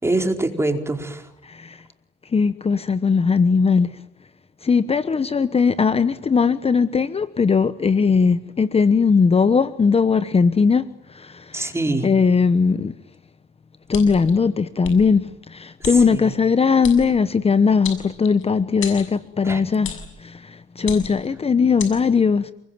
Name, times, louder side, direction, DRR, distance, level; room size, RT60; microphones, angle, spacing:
voice 1, 0.0-1.3 11.5-12.1 15.8-16.3 19.4-19.6, right 2 dB, 15° right, 4.5 m, -24 dB
voice 2, 1.4-1.8 2.3-4.0 4.6-11.7 12.0-12.9 13.9-22.5, left 5 dB, 30° left, 1.1 m, -19 dB
sound 1, 13.9-14.3 14.8-15.0 15.8-16.0 16.8-17.0 17.8-18.4 18.8-19.1 19.8-20.1 20.8-21.3 21.8-21.9, left 8 dB, 90° left, 6.8 m, -32 dB
30.0 x 21.5 x 9.4 m
cardioid pair, 90°, 20 cm